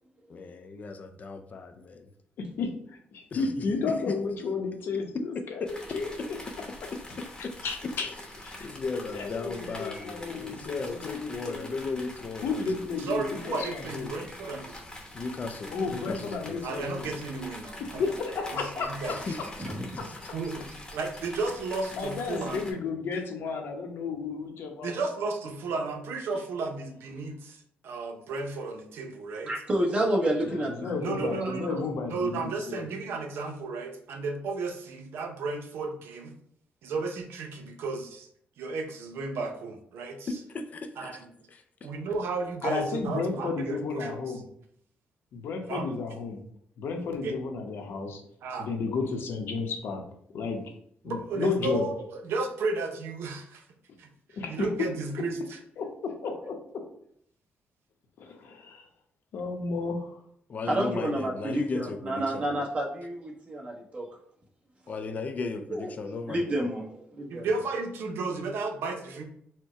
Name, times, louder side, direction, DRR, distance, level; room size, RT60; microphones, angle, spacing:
voice 1, 0.3-2.1 3.3-4.2 5.1-5.7 6.9-7.6 8.0-8.2 8.6-12.8 15.1-16.9 19.1-19.5 20.0-20.2 40.3-41.2 41.5-41.6 60.5-62.5 64.9-66.6, left 4 dB, 40° left, 7 dB, 0.4 m, -36 dB
voice 2, 2.6-5.6 5.9-6.1 7.6-8.1 8.4-8.7 9.1-11.9 12.4-14.1 15.7-17.1 18.0-19.2 20.0-20.1 21.9-24.9 30.4-32.8 42.6-44.4 45.3-46.4 46.8-48.2 48.6-50.0 50.3-50.7 51.0-51.9 54.3-54.7 55.8-56.6 58.2-58.9 59.3-60.2, left 4 dB, 75° left, 3 dB, 0.8 m, -32 dB
sound 1, 5.7-22.7, left 1 dB, 20° left, 0.9 m, -44 dB
voice 3, 13.0-14.8 16.6-18.0 18.5-19.4 20.3-20.6 20.9-22.7 24.8-29.5 31.0-36.3 36.8-38.3 38.6-40.3 41.0-41.1 41.8-44.2 45.7-45.9 47.2-47.4 48.4-48.7 51.0-53.6 54.0-54.1 54.5-55.6 67.3-69.2, right 3 dB, 85° right, 4 dB, 0.7 m, -33 dB
voice 4, 19.6-20.1 29.5-31.5 60.7-64.1 65.7-65.9 66.3-67.5, right 1 dB, 35° right, -2 dB, 1.1 m, -30 dB
4.4 x 2.2 x 4.6 m, 0.66 s
cardioid pair, 130°, 4 cm